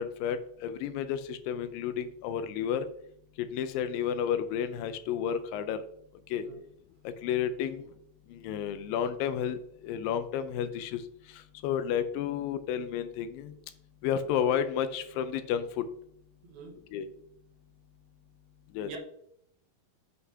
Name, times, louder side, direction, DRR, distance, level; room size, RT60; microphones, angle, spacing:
voice 1, 0.0-2.9 3.4-5.8 6.3-6.4 7.2-7.9 8.3-9.6 9.8-11.0 11.6-13.5 14.0-15.8 16.9-17.1 18.8-18.9, left 8 dB, 80° left, 10 dB, 2.3 m, -31 dB
voice 2, 16.4-16.8 18.8-19.0, right 4 dB, 80° right, 1 dB, 3.2 m, -44 dB
8.0 x 7.6 x 2.8 m, 0.73 s
omnidirectional pair, 4.2 m